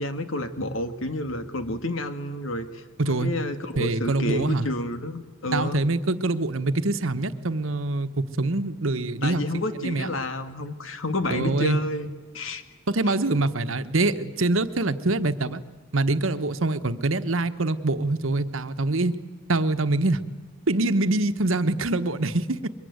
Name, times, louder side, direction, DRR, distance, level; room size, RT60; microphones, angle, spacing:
voice 1, 0.0-5.8 9.2-12.1 12.3-12.6, left 1 dB, 75° left, 9 dB, 2.0 m, -30 dB
voice 2, 3.0-3.3 3.8-4.7 5.5-9.4 9.8-10.1 11.3-11.8 12.9-15.6 15.9-19.1 19.5-20.2 20.7-22.7, right 2 dB, 75° right, 10 dB, 1.2 m, -24 dB
23.0 x 22.5 x 9.5 m, 1.3 s
head